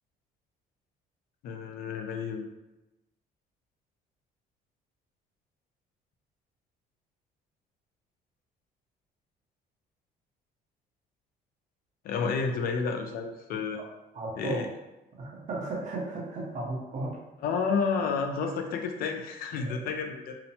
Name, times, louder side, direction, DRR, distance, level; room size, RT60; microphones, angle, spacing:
voice 1, 1.4-2.4 12.0-13.8 14.4-14.7 17.4-20.3, left 5 dB, 60° left, 5 dB, 0.4 m, -30 dB
voice 2, 14.1-14.7 15.2-17.2 19.7-19.8, right 2 dB, 45° right, -2 dB, 0.8 m, -34 dB
2.9 x 2.1 x 2.7 m, 0.98 s
cardioid pair, 110°, 17 cm